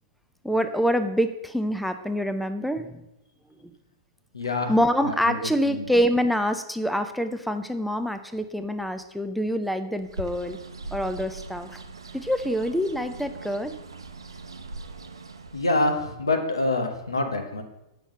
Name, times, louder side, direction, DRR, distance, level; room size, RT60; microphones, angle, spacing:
voice 1, 0.4-3.0 4.7-10.6 10.9-11.8 12.1-13.7, equal, ahead, 9 dB, 0.5 m, -26 dB
voice 2, 4.3-4.7 5.0-5.9 15.5-17.6, left 2 dB, 90° left, 4 dB, 1.2 m, -26 dB
Bird, 10.0-15.9, right 2 dB, 80° right, 0.7 m, -41 dB
7.2 x 5.8 x 5.3 m, 0.88 s
figure-of-eight pair, 105°, 2 cm